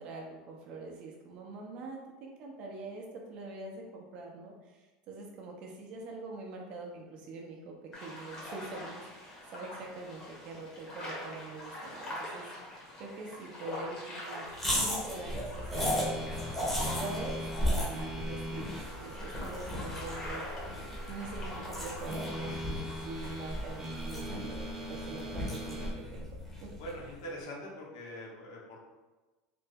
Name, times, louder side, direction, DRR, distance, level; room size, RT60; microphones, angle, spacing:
voice 1, 0.0-14.4 14.7-16.3 16.9-18.7 19.0-20.4 21.1-27.1, right 3 dB, 50° right, 0 dB, 0.7 m, -44 dB
sound 1, 7.9-23.9, left 1 dB, 30° left, 1.1 m, -45 dB
sound 2, 14.5-27.0, equal, 10° left, 0.9 m, -36 dB
sound 3, 15.7-25.9, equal, 20° right, 0.8 m, -42 dB
voice 2, 26.8-28.8, equal, 75° left, -2 dB, 0.8 m, -43 dB
3.4 x 2.0 x 3.4 m, 1.2 s
supercardioid pair, 130°, 2 cm